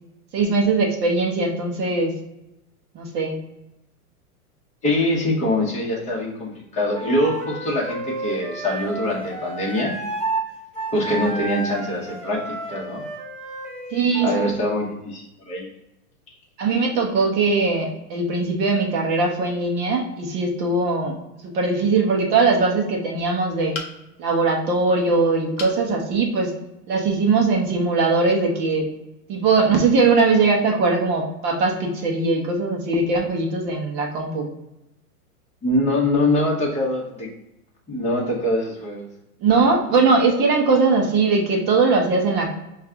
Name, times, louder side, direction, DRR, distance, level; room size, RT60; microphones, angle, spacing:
voice 1, 0.3-2.1 2.9-3.3 13.9-14.3 16.6-21.2 21.4-23.7 24.2-26.5 26.9-28.9 29.3-34.5 39.4-42.5, right 3 dB, 25° right, 1 dB, 0.6 m, -20 dB
voice 2, 4.8-10.0 10.9-13.0 14.2-15.7 35.6-37.3 37.9-39.0, left 1 dB, 15° left, -3 dB, 1.0 m, -23 dB
Wind instrument woodwind instrument, 6.9-10.5 10.7-14.6, right 2 dB, ahead, 1.5 m, -31 dB
sound 1, 23.7-24.3 25.6-25.8 26.4-26.5 26.8-26.9, left 4 dB, 35° left, 0.7 m, -34 dB
5.2 x 2.4 x 3.6 m, 0.88 s
hypercardioid pair, 140°, 45 cm